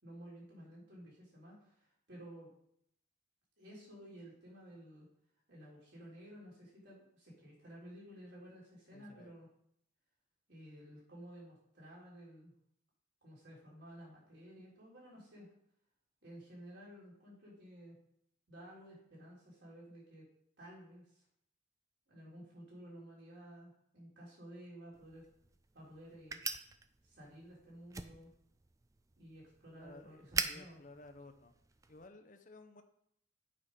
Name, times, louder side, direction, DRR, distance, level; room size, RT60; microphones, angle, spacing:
voice 1, 0.0-2.5 3.6-5.1 5.5-9.5 10.5-12.5 13.2-15.5 16.2-18.0 18.5-20.3 20.6-21.3 22.1-25.2 25.7-26.4 27.0-28.3 29.2-30.8, equal, 60° right, -5 dB, 3.8 m, -54 dB
voice 2, 8.9-9.3 29.8-31.5 31.9-32.8, left 2 dB, 40° left, 7 dB, 0.7 m, -56 dB
sound 1, 24.9-32.1, right 4 dB, 15° right, 0.4 m, -44 dB
8.8 x 5.1 x 5.2 m, 0.72 s
head